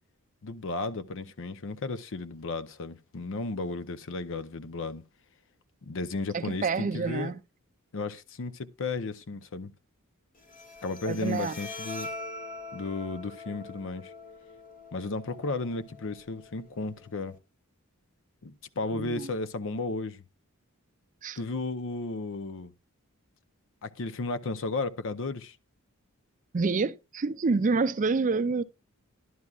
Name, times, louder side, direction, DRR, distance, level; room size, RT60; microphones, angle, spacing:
voice 1, 0.4-5.0 5.8-7.3 7.9-9.7 10.8-12.1 12.7-14.1 14.9-17.4 18.4-20.2 21.4-22.7 23.8-25.6, left 3 dB, 60° left, 0.7 m, -34 dB
voice 2, 6.3-7.4 11.0-11.5 18.9-19.3 21.2-21.4 26.5-28.6, right 4 dB, 35° right, 0.4 m, -28 dB
Bowed string instrument, 10.4-17.4, left 2 dB, 40° left, 1.9 m, -44 dB
12.0 x 11.0 x 2.4 m
head